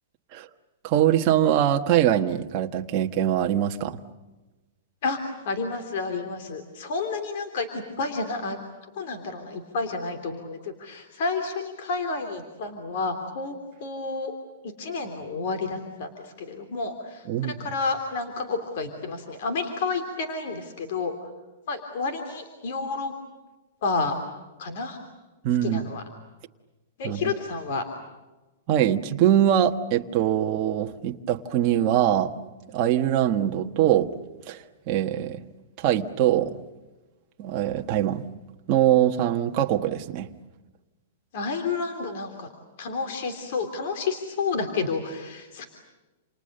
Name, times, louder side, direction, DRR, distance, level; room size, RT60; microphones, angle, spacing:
voice 1, 0.8-4.0 17.3-17.5 25.4-25.8 27.0-27.2 28.7-32.3 32.7-34.1 34.5-35.4 35.8-36.5 37.4-38.2 38.7-40.3, right 11 dB, 25° right, 3 dB, 1.4 m, -23 dB
voice 2, 5.4-8.6 8.9-14.3 14.6-21.3 21.7-23.1 23.8-24.1 24.6-25.0 25.6-26.0 27.0-27.8 41.3-42.5 42.8-45.7, left 4 dB, 45° left, 6 dB, 3.2 m, -30 dB
29.0 x 29.0 x 6.7 m, 1.1 s
supercardioid pair, 175°, 0 cm